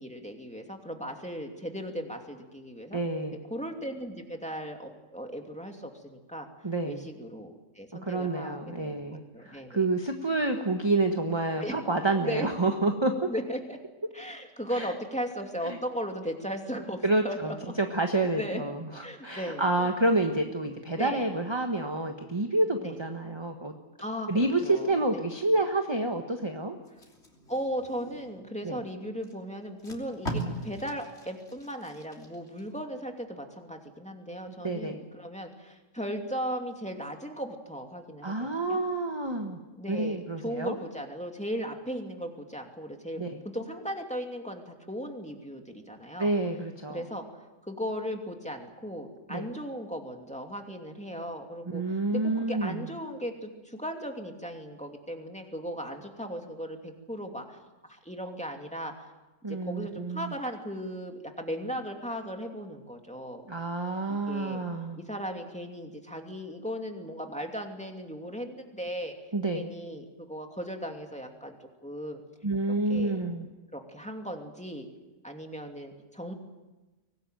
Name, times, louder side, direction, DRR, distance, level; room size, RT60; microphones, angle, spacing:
voice 1, 0.0-3.0 3.5-6.5 6.8-9.9 11.6-11.8 12.2-12.5 13.3-13.8 14.1-17.7 18.4-18.6 19.0-19.9 21.0-21.2 22.8-23.0 24.0-25.3 27.5-38.4 38.7-38.8 39.8-46.3 46.9-47.2 47.6-57.6 57.9-59.1 59.6-63.5 64.1-64.6 65.0-69.1 69.5-71.6 71.8-72.2 72.9-73.2 73.7-74.9 75.2-76.3, equal, 5° left, 3 dB, 2.6 m, -37 dB
voice 2, 2.9-3.4 6.6-7.0 8.0-13.3 14.7-14.9 15.7-15.8 17.0-23.7 24.3-26.8 28.6-28.8 34.6-35.0 38.2-39.6 39.9-40.8 43.2-43.4 46.2-47.0 49.3-49.5 51.7-52.9 59.4-60.3 63.5-65.0 69.3-69.7 72.4-73.5, right 2 dB, 20° right, 4 dB, 1.5 m, -28 dB
Packing tape duct tape, 26.8-28.5 29.2-29.3 29.7-32.6 33.1-33.3, right 1 dB, 55° left, 3.6 m, -39 dB
24.0 x 18.5 x 9.2 m, 1.1 s
omnidirectional pair, 1.4 m